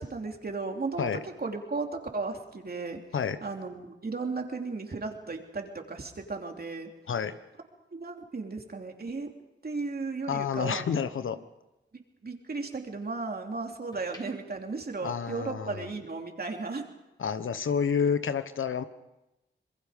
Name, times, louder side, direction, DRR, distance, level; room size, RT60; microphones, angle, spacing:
voice 1, 0.0-6.9 7.9-9.3 9.6-11.0 11.3-11.4 11.9-16.9, right 3 dB, 50° right, 3 dB, 3.1 m, -35 dB
sound 1, 9.5-11.4 11.8-13.2 13.7-15.8 16.1-16.4, left 1 dB, 20° left, 4.4 m, -57 dB
voice 2, 10.3-11.4 15.0-15.9 17.2-18.8, left 7 dB, 80° left, 11 dB, 1.1 m, -29 dB
26.0 x 21.5 x 5.2 m, 0.95 s
cardioid pair, 55°, 20 cm